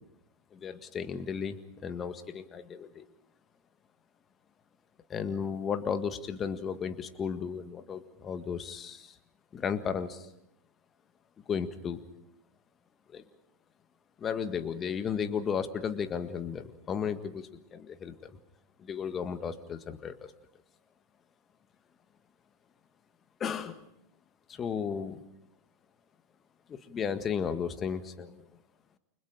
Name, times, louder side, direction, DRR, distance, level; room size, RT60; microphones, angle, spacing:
voice 1, 0.5-3.1 5.1-9.1 9.5-10.3 11.5-12.0 13.1-13.2 14.2-18.3 18.8-20.3 23.4-23.8 24.5-25.2 26.7-28.4, left 7 dB, 25° left, 11 dB, 1.7 m, -34 dB
30.0 x 25.0 x 5.0 m, 0.76 s
figure-of-eight pair, 90°, 0 cm